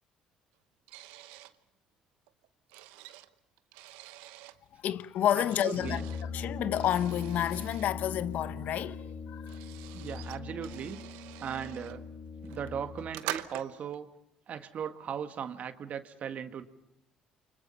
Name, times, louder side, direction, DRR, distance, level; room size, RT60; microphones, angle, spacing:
sound 1, 0.9-1.6 2.3-4.6 5.4-6.3 6.8-7.9 8.9-9.0 9.2-12.0 12.4-14.0, right 15 dB, 85° right, 0.9 m, -45 dB
voice 1, 4.8-6.0 6.3-9.6, left 11 dB, 65° left, 0.9 m, -30 dB
voice 2, 5.3-6.0 9.9-11.0 11.4-12.0 12.4-14.1 14.5-16.6, right 8 dB, 55° right, 1.6 m, -38 dB
Brass instrument, 5.7-13.2, left 5 dB, 80° left, 4.8 m, -40 dB
29.5 x 24.5 x 5.7 m
supercardioid pair, 70°, 3 cm